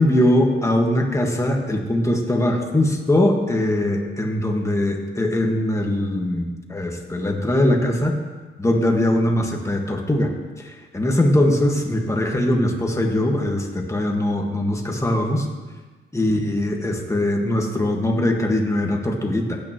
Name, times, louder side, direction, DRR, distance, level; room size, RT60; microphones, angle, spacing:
voice 1, 0.0-8.1 8.6-10.3 10.6-15.5 16.1-19.6, left 1 dB, 15° left, 2 dB, 1.6 m, -21 dB
16.0 x 8.9 x 3.1 m, 1.3 s
cardioid pair, 90°, 20 cm